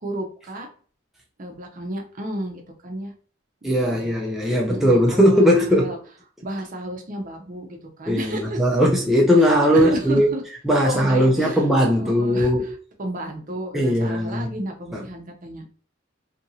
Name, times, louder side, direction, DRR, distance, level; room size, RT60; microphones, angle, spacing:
voice 1, 0.0-0.7 1.4-3.1 3.6-4.2 4.7-6.0 6.4-8.6 9.4-9.5 9.7-10.4 10.8-11.6 12.0-12.5 13.0-15.7, right 1 dB, 45° right, 0.7 m, -32 dB
voice 2, 3.6-5.9 8.1-10.3 10.7-12.7 13.7-14.5 14.9-15.0, equal, ahead, 0.4 m, -19 dB
2.8 x 2.5 x 2.6 m
head